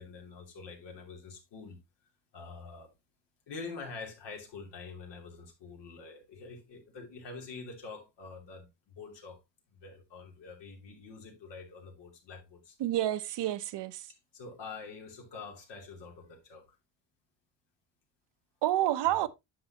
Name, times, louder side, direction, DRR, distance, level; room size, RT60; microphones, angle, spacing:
voice 1, 0.0-1.8 2.3-2.9 3.5-9.4 9.7-12.8 14.1-16.7 19.0-19.2, left 4 dB, 80° left, 3.0 m, -46 dB
voice 2, 12.8-14.1 18.6-19.3, right 13 dB, 75° right, 0.8 m, -29 dB
9.5 x 6.7 x 2.9 m
cardioid pair, 135°, 42 cm